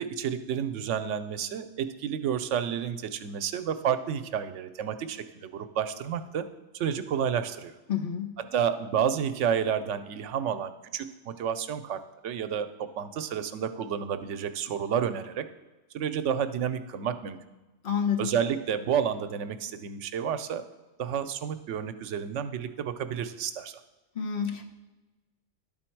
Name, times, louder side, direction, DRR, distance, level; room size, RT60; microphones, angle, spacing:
voice 1, 0.0-6.5 6.7-7.7 8.5-15.4 15.9-17.4 18.2-20.6 21.0-23.8, right 8 dB, 80° right, 10 dB, 0.9 m, -30 dB
voice 2, 7.9-8.3 17.8-18.3 24.1-24.7, left 7 dB, 50° left, 4 dB, 1.0 m, -29 dB
11.5 x 4.2 x 4.5 m, 1.1 s
omnidirectional pair, 1.2 m